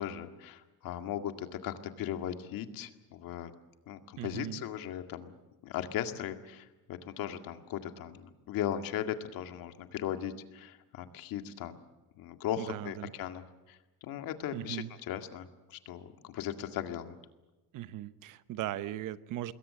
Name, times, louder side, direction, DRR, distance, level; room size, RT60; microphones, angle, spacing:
voice 1, 0.0-3.5 3.9-5.4 5.6-11.8 12.2-17.2, left 10 dB, 65° left, 7 dB, 2.1 m, -38 dB
voice 2, 4.2-4.6 12.6-13.1 14.5-14.9 17.7-19.5, right 13 dB, 55° right, 14 dB, 1.0 m, -38 dB
26.5 x 21.5 x 7.7 m, 1.1 s
cardioid pair, 175°, 37 cm